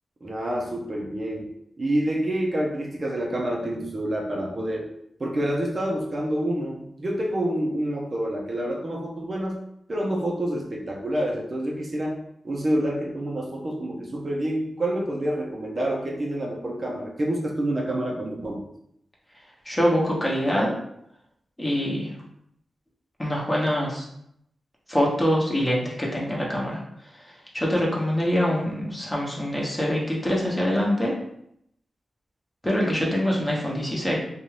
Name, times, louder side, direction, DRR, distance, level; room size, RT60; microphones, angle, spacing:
voice 1, 0.2-4.9 5.2-9.6 9.9-18.6, right 1 dB, 40° right, -1 dB, 0.5 m, -28 dB
voice 2, 19.6-20.7 21.6-22.1 23.2-24.1 24.9-26.8 27.1-31.1 32.6-34.2, equal, 20° left, -3 dB, 0.9 m, -24 dB
2.6 x 2.3 x 3.1 m, 0.75 s
cardioid pair, 70°, 0 cm